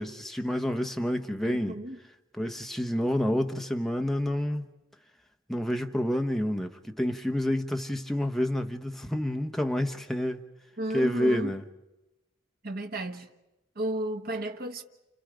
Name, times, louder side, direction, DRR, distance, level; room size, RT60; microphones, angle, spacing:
voice 1, 0.0-1.8 2.3-4.7 5.5-10.4 10.9-11.6, equal, ahead, 1.0 m, -28 dB
voice 2, 1.5-2.0 10.8-11.5 12.6-13.3 13.7-14.8, right 1 dB, 45° right, 1.3 m, -33 dB
29.5 x 29.5 x 5.1 m
head